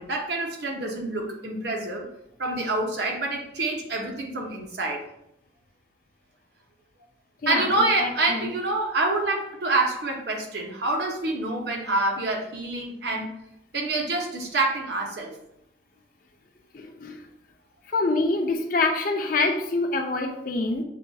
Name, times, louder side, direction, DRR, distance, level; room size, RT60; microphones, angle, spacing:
voice 1, 0.0-2.1 2.4-5.0 7.5-13.3 13.7-15.3, right 2 dB, 60° right, 1 dB, 0.8 m, -27 dB
voice 2, 16.7-17.1 17.9-20.8, left 3 dB, 45° left, 4 dB, 0.5 m, -25 dB
6.6 x 2.6 x 2.3 m, 0.79 s
head